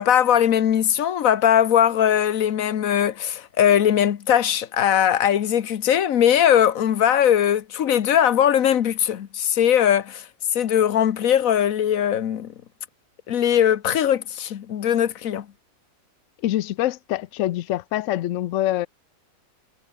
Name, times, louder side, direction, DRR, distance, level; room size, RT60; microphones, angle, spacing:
voice 1, 0.0-10.2 10.5-12.5 13.3-15.5, left 10 dB, 55° left, 1.2 m, -20 dB
voice 2, 16.4-18.9, left 14 dB, 75° left, 0.7 m, -25 dB
omnidirectional pair, 1.9 m